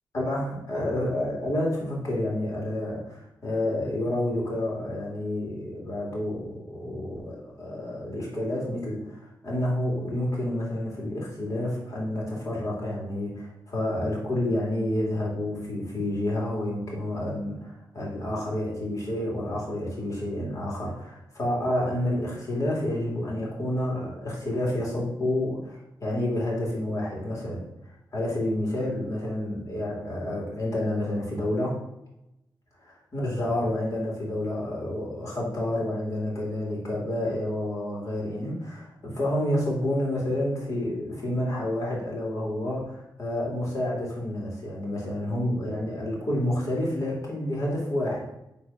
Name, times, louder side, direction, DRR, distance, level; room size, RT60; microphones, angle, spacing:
voice 1, 0.1-27.6 28.1-31.8 33.1-48.2, left 1 dB, 45° left, -3 dB, 2.9 m, -29 dB
8.7 x 3.5 x 5.8 m, 0.84 s
wide cardioid pair, 165°, 8 cm